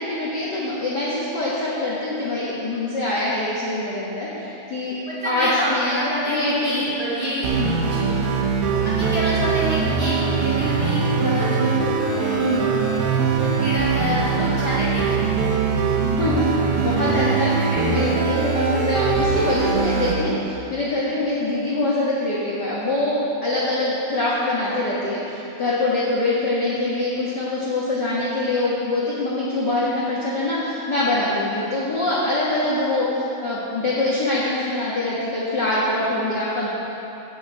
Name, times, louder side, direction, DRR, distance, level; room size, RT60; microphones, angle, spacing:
voice 1, 0.0-6.8 7.6-7.7 12.4-12.7 16.0-17.5 17.9-36.7, left 2 dB, 60° left, -8 dB, 1.1 m, -24 dB
voice 2, 5.1-7.5 7.9-8.1 8.8-12.6 13.1-15.3 17.6-18.1, equal, 20° right, -8 dB, 2.0 m, -27 dB
sound 1, 7.4-20.1, right 5 dB, 90° right, 2.9 m, -22 dB
15.5 x 6.4 x 4.9 m, 2.9 s
omnidirectional pair, 4.2 m